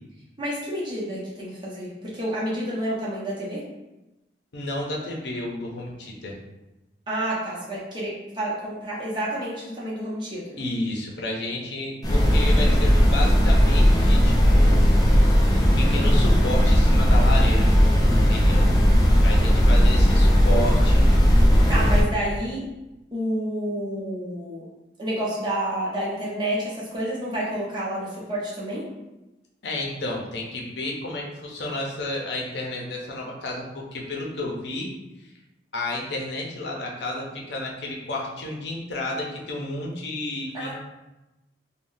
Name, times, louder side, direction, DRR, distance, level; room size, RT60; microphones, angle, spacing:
voice 1, 0.4-3.6 7.1-10.6 21.7-22.7 23.1-24.6 25.0-28.8 40.5-40.7, right 1 dB, 25° right, -6 dB, 0.8 m, -29 dB
voice 2, 4.5-6.4 10.6-14.9 15.6-17.7 18.1-18.7 19.2-21.1 29.6-34.9 35.2-35.3 35.7-40.7, left 1 dB, 75° left, -2 dB, 0.6 m, -31 dB
sound 1, 12.0-22.0, equal, 20° left, 0.4 m, -17 dB
3.5 x 2.2 x 2.6 m, 1.0 s
head